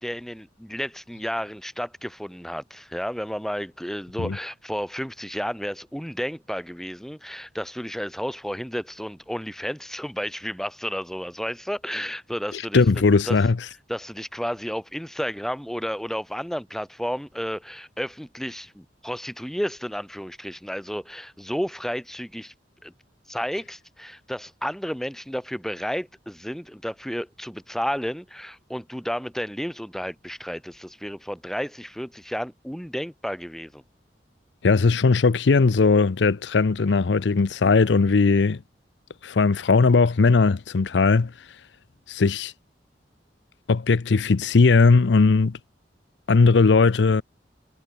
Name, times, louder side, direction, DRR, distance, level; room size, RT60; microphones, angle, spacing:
voice 1, 0.0-12.8 13.3-13.4 13.9-22.5 22.8-22.9 23.3-33.8, equal, ahead, 2.8 m, -32 dB
voice 2, 12.5-13.6 34.6-38.6 39.2-41.3 42.1-42.5 43.7-45.6 46.3-47.2, left 4 dB, 85° left, 0.6 m, -18 dB
head